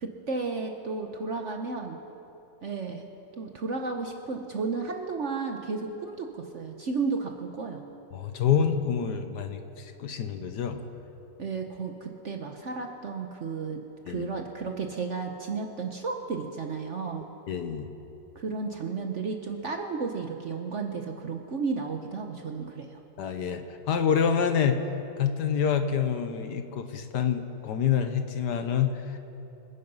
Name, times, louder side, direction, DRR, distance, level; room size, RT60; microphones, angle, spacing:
voice 1, 0.0-2.0 2.6-3.1 3.4-7.8 11.4-13.8 14.1-17.3 18.3-23.0, right 4 dB, 50° right, 4 dB, 1.0 m, -33 dB
voice 2, 8.1-10.8 14.1-14.3 17.5-17.9 23.2-24.8 25.2-29.2, left 7 dB, 65° left, 8 dB, 1.4 m, -27 dB
26.5 x 9.7 x 5.5 m, 3.0 s
omnidirectional pair, 2.0 m